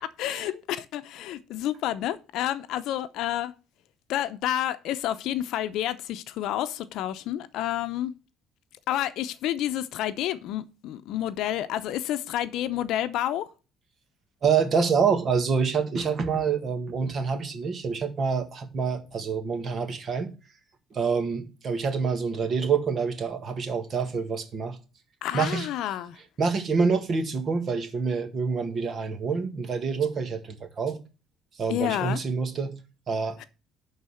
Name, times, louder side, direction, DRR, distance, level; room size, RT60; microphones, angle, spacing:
voice 1, 0.0-3.5 4.1-8.1 8.9-13.5 25.2-26.2 31.7-32.2 33.4-33.5, left 12 dB, 70° left, 0.7 m, -29 dB
voice 2, 14.4-20.3 20.9-24.8 25.3-25.7 26.4-31.0 31.6-32.7 33.1-33.5, right 5 dB, 35° right, 1.6 m, -27 dB
11.0 x 4.0 x 6.5 m
cardioid pair, 155°, 0 cm